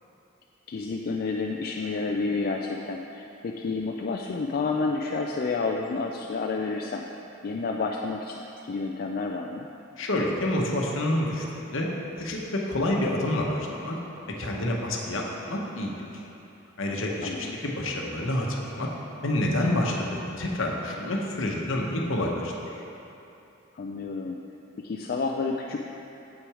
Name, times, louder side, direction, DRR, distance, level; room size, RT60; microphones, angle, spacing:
voice 1, 0.7-7.0 7.4-8.4 8.6-9.7 17.2-17.6 23.7-24.4 24.8-25.8, left 4 dB, 45° left, 1 dB, 0.3 m, -30 dB
voice 2, 10.0-11.9 12.2-12.4 12.7-14.0 14.4-15.9 16.8-18.9 19.2-22.5, left 1 dB, 65° left, -1 dB, 1.0 m, -28 dB
7.6 x 6.0 x 4.8 m, 2.9 s
head